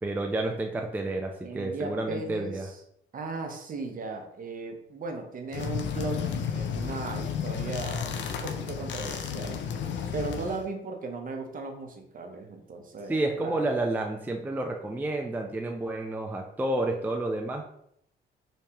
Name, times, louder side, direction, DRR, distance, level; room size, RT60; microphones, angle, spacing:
voice 1, 0.0-2.7 13.1-17.7, right 2 dB, 10° right, 2 dB, 0.4 m, -30 dB
voice 2, 1.4-2.8 3.1-9.6 10.1-13.6, right 3 dB, 45° right, 4 dB, 0.7 m, -37 dB
sound 1, 5.5-10.7, left 7 dB, 65° left, 0.5 m, -32 dB
3.3 x 3.1 x 2.9 m, 0.73 s
cardioid pair, 90°, 20 cm